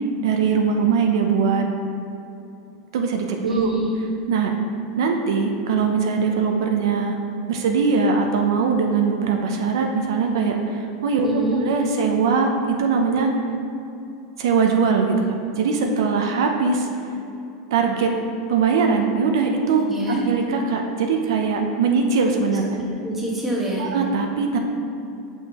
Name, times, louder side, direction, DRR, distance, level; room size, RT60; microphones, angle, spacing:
voice 1, 0.2-1.7 2.9-3.7 4.3-4.5 5.0-7.2 7.5-11.3 11.6-13.3 14.4-16.9 17.7-18.1 18.5-19.9 20.2-22.8 23.8-24.6, right 5 dB, 85° right, 3 dB, 0.6 m, -21 dB
voice 2, 3.4-3.9 11.2-11.6 19.9-20.2 23.0-23.9, right 2 dB, 10° right, -5 dB, 1.3 m, -25 dB
6.3 x 5.4 x 2.9 m, 2.7 s
supercardioid pair, 140°, 2 cm